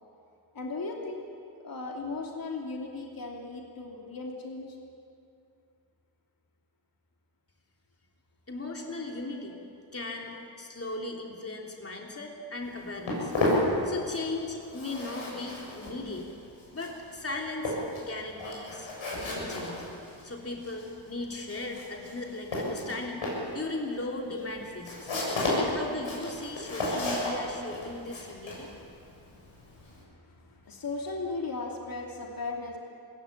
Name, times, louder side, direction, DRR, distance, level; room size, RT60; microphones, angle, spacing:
voice 1, 0.5-1.3 1.6-4.8 25.7-25.8 29.9-32.8, left 3 dB, 45° left, -1 dB, 3.0 m, -37 dB
voice 2, 8.5-9.5 9.9-13.3 13.8-16.3 16.7-18.9 19.1-19.8 20.2-23.2 23.5-25.1 25.5-28.7, left 2 dB, 30° left, 0 dB, 3.4 m, -37 dB
Walk footsteps, 12.6-14.4 14.6-30.0, left 1 dB, 75° left, 7.5 m, -33 dB
20.0 x 17.0 x 8.7 m, 2.5 s
cardioid pair, 55°, 48 cm